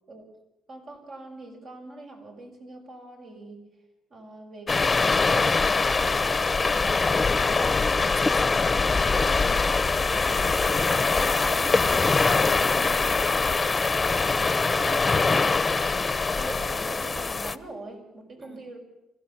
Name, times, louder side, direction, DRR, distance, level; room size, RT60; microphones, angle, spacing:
voice 1, 0.7-3.6 4.1-6.7 14.5-18.8, right 2 dB, 55° right, 2 dB, 6.0 m, -42 dB
sound 1, 4.7-17.6, left 4 dB, 25° left, 0.9 m, -23 dB
voice 2, 7.6-13.5 18.4-18.6, right 1 dB, 30° right, 6 dB, 4.6 m, -45 dB
sound 2, 10.6-13.6 14.0-15.0, right 1 dB, 70° right, 2.4 m, -44 dB
25.0 x 16.0 x 7.4 m, 0.94 s
cardioid pair, 90°, 0 cm